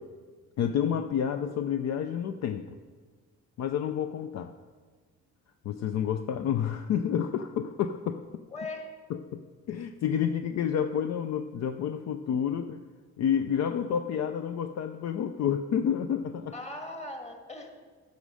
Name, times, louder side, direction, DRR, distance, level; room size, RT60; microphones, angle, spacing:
voice 1, 0.6-2.8 3.6-4.5 5.6-8.2 9.1-12.8 13.2-16.5, left 8 dB, 60° left, 8 dB, 0.5 m, -29 dB
voice 2, 8.5-9.0 16.5-17.7, left 2 dB, 20° left, 4 dB, 1.5 m, -39 dB
10.5 x 6.4 x 4.9 m, 1.5 s
cardioid pair, 90°, 30 cm